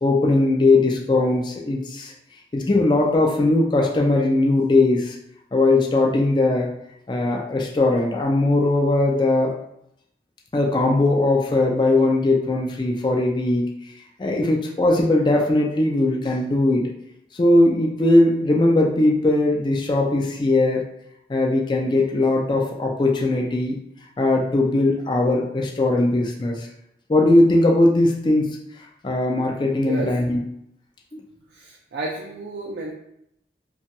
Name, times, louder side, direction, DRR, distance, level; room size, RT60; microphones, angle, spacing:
voice 1, 0.0-2.1 2.5-5.2 5.5-6.7 7.1-9.6 10.5-13.7 14.2-16.9 17.3-20.8 21.3-23.8 24.2-26.7 27.1-28.5 29.0-30.4 31.1-31.2, left 2 dB, 25° left, -1 dB, 0.3 m, -19 dB
voice 2, 31.5-32.9, right 2 dB, 70° right, -3 dB, 0.4 m, -31 dB
2.9 x 2.3 x 2.8 m, 0.77 s
head